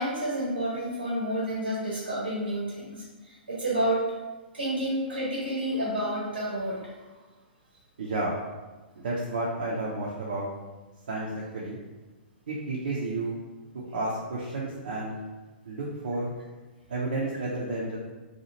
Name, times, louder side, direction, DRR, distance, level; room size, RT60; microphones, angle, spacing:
voice 1, 0.0-4.1 4.5-7.1, right 1 dB, 80° right, -6 dB, 0.9 m, -30 dB
voice 2, 8.0-8.3 9.0-10.5 11.1-11.8 12.5-13.4 13.7-15.2 15.7-16.3 16.9-18.0, right 2 dB, 60° right, -5 dB, 0.6 m, -31 dB
2.8 x 2.3 x 2.9 m, 1.2 s
figure-of-eight pair, 110°, 6 cm